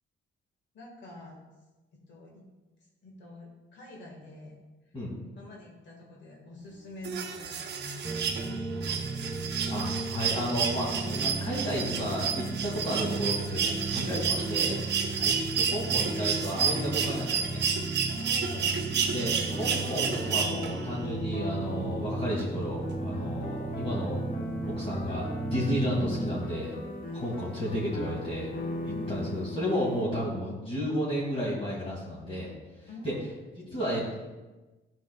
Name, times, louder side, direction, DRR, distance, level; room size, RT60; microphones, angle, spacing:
voice 1, 0.7-1.4 2.1-2.4 3.0-4.6 5.4-9.0 15.1-15.5 18.0-19.3 23.3-23.6 27.0-27.6 28.8-29.4 32.9-33.3 33.6-34.0, left 1 dB, 65° left, -1 dB, 1.7 m, -46 dB
sound 1, 7.0-21.0 22.4-22.5, right 6 dB, 60° right, 0.8 m, -31 dB
sound 2, 8.0-26.4, right 3 dB, 10° right, 0.7 m, -35 dB
voice 2, 9.7-14.8 15.2-15.3 15.7-17.6 19.1-24.2 24.6-26.7 27.1-28.5 28.8-32.5 33.0-33.1 33.6-34.1, equal, 30° left, -6 dB, 2.4 m, -32 dB
sound 3, 19.4-30.0, left 2 dB, 45° left, 1.2 m, -39 dB
10.5 x 6.3 x 2.3 m, 1.1 s
cardioid pair, 90°, 20 cm